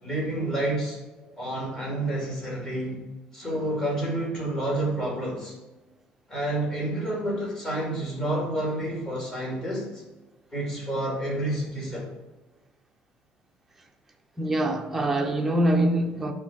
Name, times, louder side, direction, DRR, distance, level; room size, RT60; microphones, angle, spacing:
voice 1, 0.0-1.0 1.4-3.0 3.3-5.5 6.3-10.0 10.5-12.1, right 1 dB, 20° left, 2.5 m, -29 dB
voice 2, 14.4-16.3, right 1 dB, 10° right, 0.7 m, -24 dB
9.6 x 3.8 x 4.4 m
cardioid pair, 165°, 3 cm